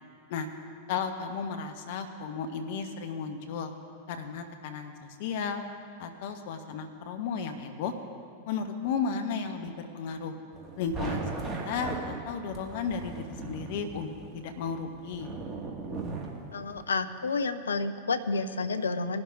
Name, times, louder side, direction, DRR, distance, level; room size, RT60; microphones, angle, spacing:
voice 1, 0.9-3.7 4.1-5.6 6.0-7.9 8.5-10.4 10.8-15.3, left 6 dB, 50° left, 7 dB, 1.0 m, -34 dB
sound 1, 10.5-16.8, right 3 dB, 20° right, 1.9 m, -38 dB
voice 2, 16.5-19.2, left 4 dB, 70° left, 10 dB, 0.6 m, -30 dB
21.0 x 11.5 x 2.6 m, 2.3 s
figure-of-eight pair, 90°, 0 cm